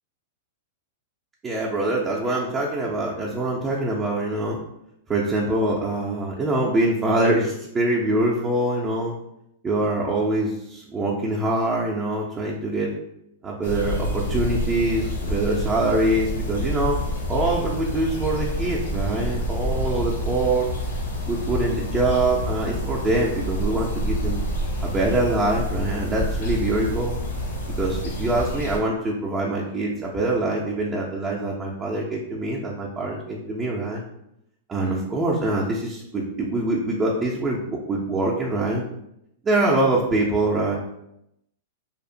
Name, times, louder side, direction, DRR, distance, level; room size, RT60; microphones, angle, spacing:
voice 1, 1.4-4.6 5.1-9.1 9.6-13.0 13.4-17.0 17.3-20.7 21.3-24.4 24.8-27.2 27.8-34.0 34.7-37.6 37.9-38.8 39.4-40.8, right 2 dB, 20° right, -4 dB, 0.4 m, -24 dB
sound 1, 13.6-28.8, equal, 90° left, 0.7 m, -28 dB
2.7 x 2.0 x 2.6 m, 0.81 s
hypercardioid pair, 130°, 0 cm